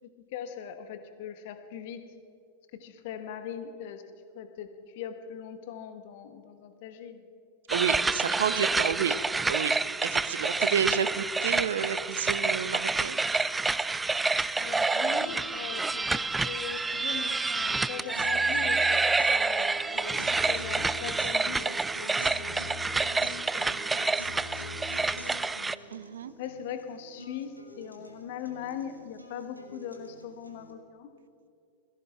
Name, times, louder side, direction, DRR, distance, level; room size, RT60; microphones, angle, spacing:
voice 1, 0.0-2.0 2.7-4.0 4.3-7.3 8.2-8.3 14.6-19.0 19.3-24.3 25.0-25.5 25.8-26.0 26.4-31.1, left 8 dB, 50° left, 8 dB, 1.4 m, -41 dB
sound 1, 7.7-25.8, right 3 dB, 10° right, 0.3 m, -28 dB
voice 2, 7.7-9.2 9.5-9.8 10.0-13.2 25.9-26.3, right 8 dB, 65° right, 15 dB, 0.6 m, -30 dB
sound 2, 14.7-30.7, left 2 dB, 90° left, 1.6 m, -45 dB
18.5 x 16.5 x 3.6 m, 2.4 s
figure-of-eight pair, 90°, 0 cm